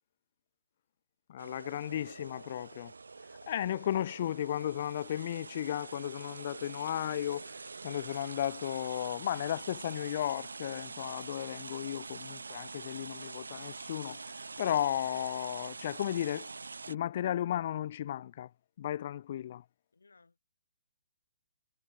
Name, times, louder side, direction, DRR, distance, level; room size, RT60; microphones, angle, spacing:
voice 1, 1.3-2.9 3.5-16.5 16.9-18.5 18.8-19.6, left 11 dB, 50° left, 0.5 m, -35 dB
sound 1, 1.4-16.9, right 4 dB, 80° right, 0.4 m, -45 dB
voice 2, 1.9-2.8 19.9-20.4, left 4 dB, 80° left, 3.1 m, -62 dB
figure-of-eight pair, 135°, 0 cm